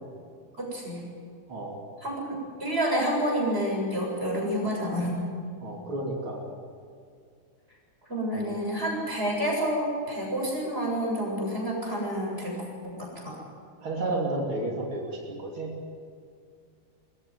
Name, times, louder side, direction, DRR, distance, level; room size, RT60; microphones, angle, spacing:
voice 1, 0.6-1.0 2.0-5.2 8.1-13.3, equal, 30° right, -2 dB, 7.5 m, -29 dB
voice 2, 5.6-6.4 13.8-15.7, right 2 dB, 85° right, -1 dB, 3.7 m, -31 dB
23.5 x 15.0 x 9.7 m, 2.3 s
omnidirectional pair, 2.2 m